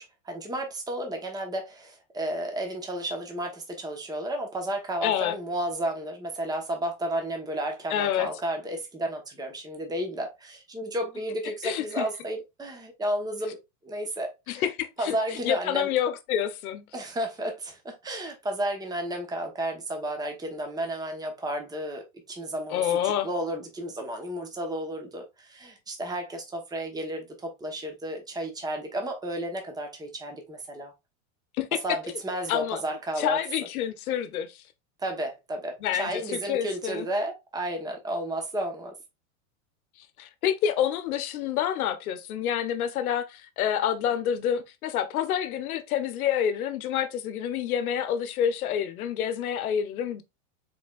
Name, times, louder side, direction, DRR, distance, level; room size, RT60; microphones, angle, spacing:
voice 1, 0.0-13.6 13.8-14.6 15.0-15.9 16.9-30.9 31.8-33.4 35.0-38.9, right 1 dB, 10° right, 1.1 m, -32 dB
voice 2, 5.0-5.4 7.9-8.3 11.6-12.1 14.5-16.9 22.7-23.3 31.6-31.8 32.5-32.8 33.2-34.6 35.8-37.1 40.2-50.2, left 9 dB, 85° left, 0.9 m, -28 dB
4.3 x 4.1 x 2.4 m
supercardioid pair, 115°, 42 cm